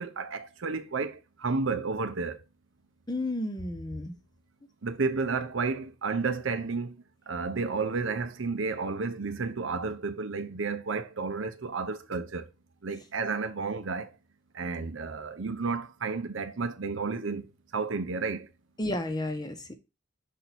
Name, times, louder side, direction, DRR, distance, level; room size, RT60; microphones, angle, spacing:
voice 1, 0.0-2.4 4.8-12.5 12.8-14.2 14.5-18.5, right 4 dB, 70° right, 0.7 m, -32 dB
voice 2, 3.1-4.1 18.8-19.7, left 1 dB, 20° left, 0.9 m, -32 dB
5.9 x 4.5 x 4.1 m
head